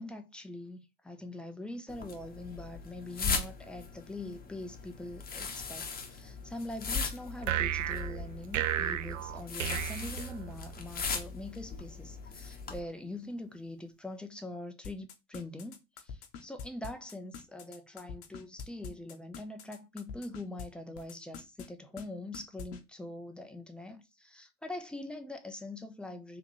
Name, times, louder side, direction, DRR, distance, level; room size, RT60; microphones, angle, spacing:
voice 1, 0.0-26.4, left 2 dB, 5° left, 0.4 m, -43 dB
sound 1, 1.9-12.8, left 5 dB, 25° left, 0.8 m, -39 dB
sound 2, 7.4-10.9, right 12 dB, 75° right, 0.5 m, -34 dB
sound 3, 14.8-20.6 21.0-21.7 22.0-22.1 22.3-22.8, left 6 dB, 55° left, 0.8 m, -44 dB
3.6 x 2.9 x 3.0 m
figure-of-eight pair, 70°, 39 cm